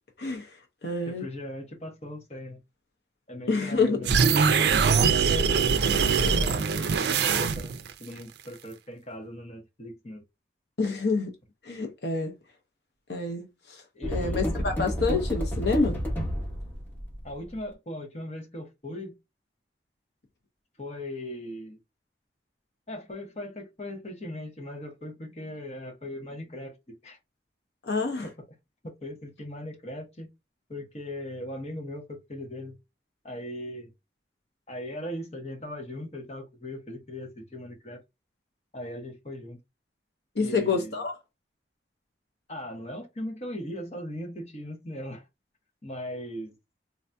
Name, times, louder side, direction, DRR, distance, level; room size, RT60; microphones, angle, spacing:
voice 1, 0.2-0.5 0.8-1.2 3.5-4.0 4.8-5.0 5.3-5.6 6.2-6.5 10.8-11.3 11.6-12.3 13.1-13.8 14.1-16.0 27.8-28.3 40.4-41.1, left 4 dB, 75° left, 0.8 m, -28 dB
voice 2, 1.0-2.6 3.3-4.2 4.8-5.3 5.9-7.7 8.0-10.2 13.9-14.5 17.2-19.1 20.8-21.8 22.9-27.2 28.2-28.3 28.8-30.3 30.7-32.7 33.2-33.9 34.7-38.0 38.7-39.6 40.4-41.0 42.5-45.3 45.8-46.5, left 1 dB, 35° left, 1.0 m, -39 dB
sound 1, 4.0-7.9, right 5 dB, 75° right, 0.4 m, -22 dB
sound 2, 14.0-17.4, equal, 10° left, 1.0 m, -30 dB
3.9 x 2.6 x 2.2 m
head